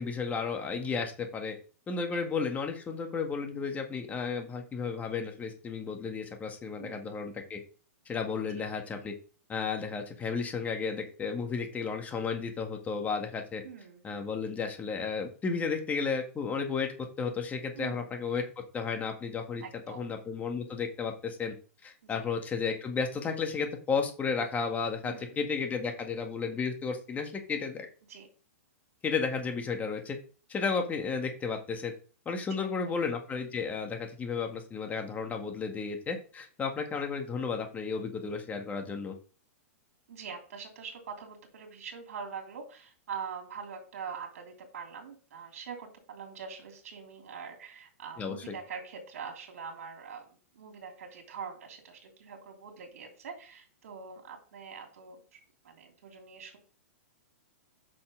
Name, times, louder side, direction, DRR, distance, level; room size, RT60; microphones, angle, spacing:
voice 1, 0.0-1.5 1.9-7.6 8.1-9.1 9.5-13.6 14.0-16.9 17.2-18.4 18.7-19.6 20.0-21.5 21.8-27.8 29.0-30.2 30.5-31.9 32.3-39.2 48.2-48.4, left 5 dB, 20° left, 4 dB, 1.9 m, -33 dB
voice 2, 6.8-7.1 8.3-8.7 13.6-14.1 17.7-18.1 19.6-20.1 22.0-22.3 25.0-25.3 28.1-28.3 32.6-33.0 40.1-55.4 55.6-56.6, right 6 dB, 75° right, 3 dB, 3.4 m, -44 dB
8.5 x 6.1 x 3.9 m, 0.39 s
hypercardioid pair, 125°, 8 cm